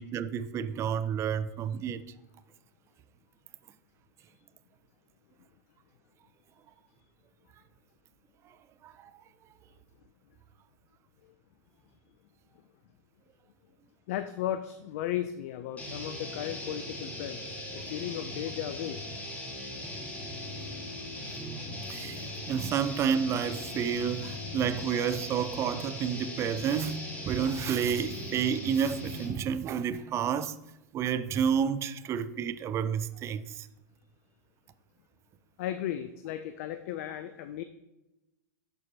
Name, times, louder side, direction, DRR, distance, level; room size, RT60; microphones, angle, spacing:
voice 1, 0.0-2.0 8.8-9.1 21.9-30.6 30.9-33.7, right 8 dB, 30° right, 0.4 m, -30 dB
voice 2, 14.1-19.0 35.6-37.6, left 11 dB, 55° left, 0.4 m, -35 dB
sound 1, 15.8-29.5, left 1 dB, 15° left, 1.5 m, -39 dB
11.5 x 4.6 x 2.7 m
figure-of-eight pair, 95°, 10 cm